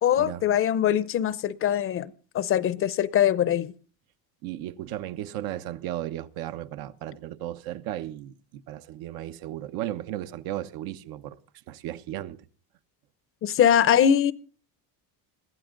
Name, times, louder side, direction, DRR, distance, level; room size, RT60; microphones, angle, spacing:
voice 1, 0.0-3.7 13.4-14.3, left 9 dB, 35° left, 0.7 m, -22 dB
voice 2, 4.4-11.4 11.7-12.4, right 13 dB, 70° right, 1.1 m, -35 dB
21.0 x 15.5 x 3.8 m
cardioid pair, 155°, 38 cm